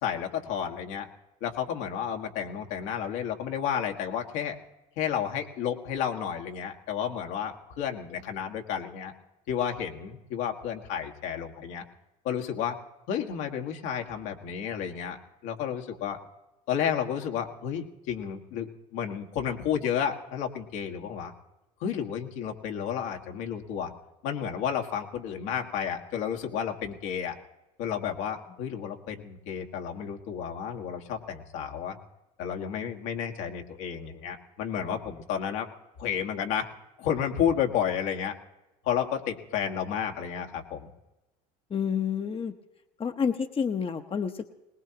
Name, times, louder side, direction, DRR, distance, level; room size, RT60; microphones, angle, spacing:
voice 1, 0.0-1.1 1.4-4.6 5.0-9.1 9.5-11.8 12.2-12.8 13.1-15.2 15.4-16.2 16.7-21.3 21.8-23.9 24.2-27.4 27.8-32.0 32.4-35.7 36.0-36.7 37.0-38.3 38.8-40.9, left 8 dB, 75° left, 2 dB, 1.8 m, -31 dB
voice 2, 41.7-42.5 43.0-44.5, left 6 dB, 30° left, 7 dB, 1.0 m, -29 dB
22.0 x 19.5 x 2.9 m, 1.0 s
hypercardioid pair, 80°, 19 cm